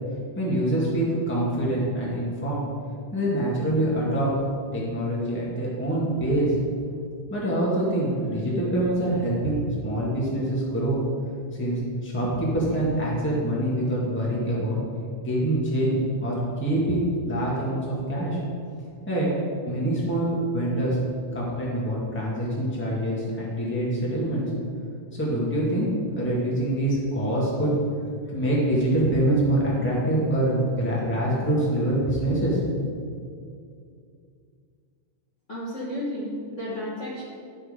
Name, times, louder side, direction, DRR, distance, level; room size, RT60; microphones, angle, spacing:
voice 1, 0.3-2.6 3.1-4.3 4.7-6.5 7.3-11.0 11.6-14.8 15.2-18.4 19.1-19.3 19.6-21.0 21.3-24.4 25.1-27.7 28.3-32.6, right 1 dB, 10° left, -5 dB, 0.7 m, -25 dB
voice 2, 35.5-37.2, equal, 80° left, -8 dB, 0.6 m, -32 dB
12.0 x 4.1 x 5.0 m, 2.3 s
omnidirectional pair, 3.6 m